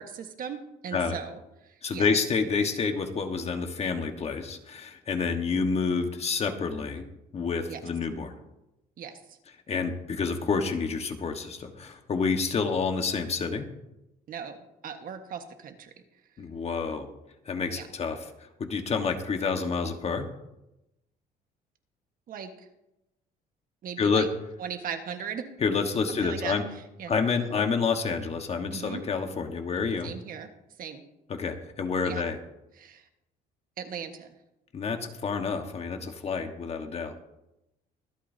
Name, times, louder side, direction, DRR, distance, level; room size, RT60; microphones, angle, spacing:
voice 1, 0.0-2.1 7.7-7.8 9.0-9.4 14.3-14.6 14.8-15.9 17.7-17.9 22.3-22.7 23.8-24.3 24.6-25.5 26.1-27.1 28.7-29.0 30.0-30.5 30.8-31.0 32.0-32.2 32.8-33.1 33.8-34.3, right 7 dB, 55° right, 6 dB, 1.5 m, -38 dB
voice 2, 1.8-7.0 7.3-8.3 9.7-13.7 16.4-17.1 17.5-18.2 18.6-20.3 24.0-24.3 25.6-26.6 27.1-30.1 31.3-32.4 34.7-37.2, left 5 dB, 40° left, 5 dB, 1.5 m, -28 dB
24.5 x 8.5 x 2.8 m, 0.90 s
cardioid pair, 110°, 17 cm